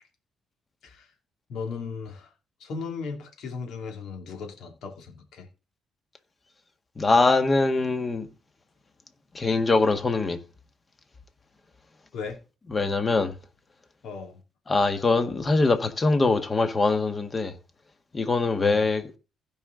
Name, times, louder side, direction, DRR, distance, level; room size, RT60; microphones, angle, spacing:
voice 1, 1.5-2.3 2.6-5.5 12.1-12.4 14.0-14.4 18.6-18.8, left 5 dB, 75° left, 2.7 m, -36 dB
voice 2, 7.0-8.3 9.3-10.4 12.7-13.3 14.7-17.5 18.1-19.1, left 3 dB, 30° left, 1.6 m, -23 dB
16.0 x 5.3 x 3.8 m
cardioid pair, 90°, 0 cm